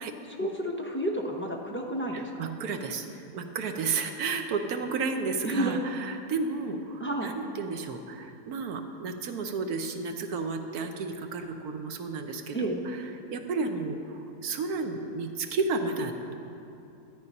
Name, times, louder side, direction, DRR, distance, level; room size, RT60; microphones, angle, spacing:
voice 1, 0.3-2.5 5.4-5.7 7.0-7.3 12.5-12.8, right 1 dB, 15° left, -1 dB, 0.4 m, -31 dB
voice 2, 2.1-3.1 3.3-13.0 13.3-16.3, right 4 dB, 70° right, 6 dB, 1.3 m, -32 dB
12.5 x 8.7 x 5.3 m, 2.9 s
omnidirectional pair, 1.7 m